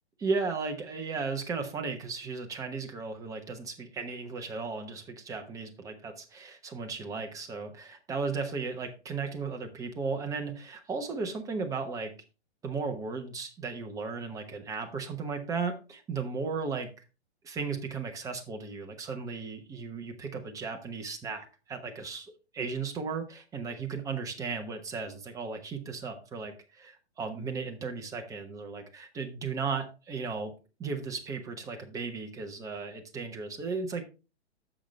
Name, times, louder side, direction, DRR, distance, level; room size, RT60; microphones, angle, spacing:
voice 1, 0.2-12.1 12.6-16.9 17.4-30.5 30.8-34.0, right 4 dB, 10° right, 4 dB, 1.0 m, -35 dB
10.0 x 6.7 x 3.2 m, 0.31 s
figure-of-eight pair, 120°, 34 cm